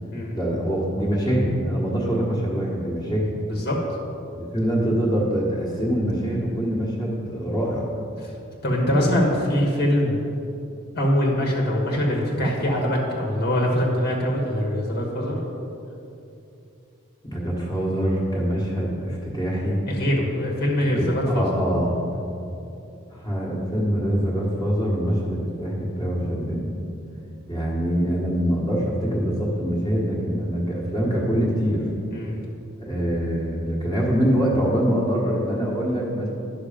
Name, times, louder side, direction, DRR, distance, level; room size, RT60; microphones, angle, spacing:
voice 1, 0.3-3.3 4.3-7.9 17.2-19.8 20.8-22.0 23.1-26.7 27.5-31.8 32.8-36.3, equal, 20° left, -4 dB, 1.3 m, -24 dB
voice 2, 8.6-10.2 10.9-15.4 19.9-21.5 32.1-32.4, equal, 50° left, -2 dB, 1.4 m, -23 dB
10.5 x 6.3 x 5.0 m, 2.7 s
head